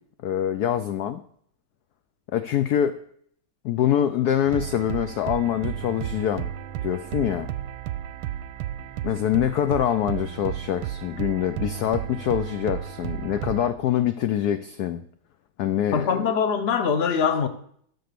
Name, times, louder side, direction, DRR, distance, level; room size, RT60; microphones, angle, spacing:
voice 1, 0.2-1.2 2.3-3.0 3.6-6.5 6.8-7.5 9.0-15.0 15.6-16.2, left 10 dB, 70° left, 0.9 m, -25 dB
sound 1, 4.5-13.7, right 11 dB, 90° right, 1.5 m, -33 dB
voice 2, 15.9-17.5, left 6 dB, 40° left, 0.9 m, -23 dB
13.0 x 6.7 x 6.8 m
omnidirectional pair, 2.3 m